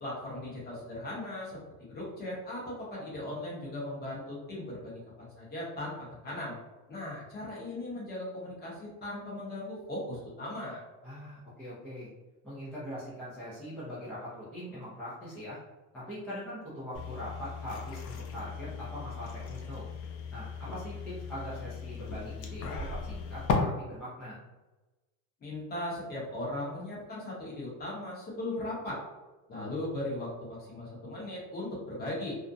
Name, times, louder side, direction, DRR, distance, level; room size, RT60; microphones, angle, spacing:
voice 1, 0.0-1.6 1.9-6.5 6.9-10.8 25.4-29.0 29.5-32.4, left 1 dB, 25° left, -6 dB, 0.9 m, -38 dB
voice 2, 11.0-12.1 12.4-15.6 15.9-19.8 20.3-24.4, equal, 5° left, -12 dB, 0.4 m, -42 dB
sound 1, 16.9-23.5, left 6 dB, 85° left, 0.6 m, -37 dB
2.4 x 2.1 x 2.6 m, 1.1 s
cardioid pair, 150°, 42 cm